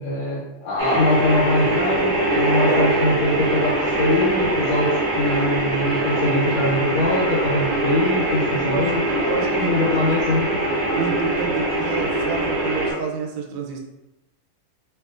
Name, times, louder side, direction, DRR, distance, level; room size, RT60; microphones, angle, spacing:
voice 1, 0.0-10.5, left 1 dB, 85° left, -7 dB, 1.7 m, -23 dB
sound 1, 0.8-12.9, right 1 dB, 55° right, 0.7 m, -22 dB
voice 2, 8.5-8.9 9.2-10.2 10.5-10.6 10.9-13.8, right 5 dB, 90° right, 1 dB, 1.4 m, -29 dB
3.1 x 2.9 x 2.4 m, 0.97 s
omnidirectional pair, 2.2 m